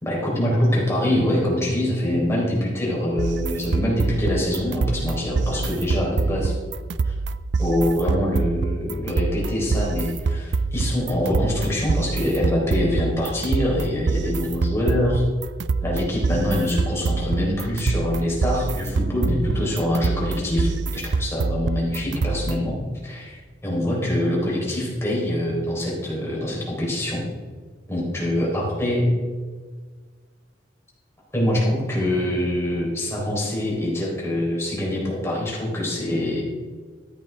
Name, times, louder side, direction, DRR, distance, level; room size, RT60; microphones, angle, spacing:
voice 1, 0.0-6.6 7.0-7.1 7.6-15.2 15.8-27.2 27.9-29.0 31.3-36.4, left 1 dB, 15° left, -4 dB, 3.8 m, -24 dB
sound 1, 3.2-22.8, right 4 dB, 60° right, 0.4 m, -26 dB
13.5 x 10.5 x 3.4 m, 1.5 s
head